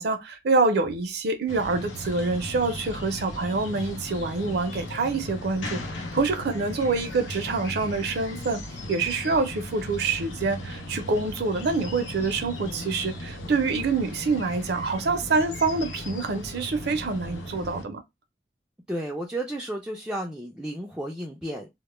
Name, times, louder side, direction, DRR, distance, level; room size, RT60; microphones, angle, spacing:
voice 1, 0.0-8.6 8.9-18.0, right 3 dB, 60° right, 0.5 m, -26 dB
sound 1, 1.5-17.8, left 1 dB, 85° left, 0.6 m, -37 dB
voice 2, 18.9-21.7, right 1 dB, 5° right, 0.3 m, -32 dB
2.1 x 2.0 x 3.0 m
head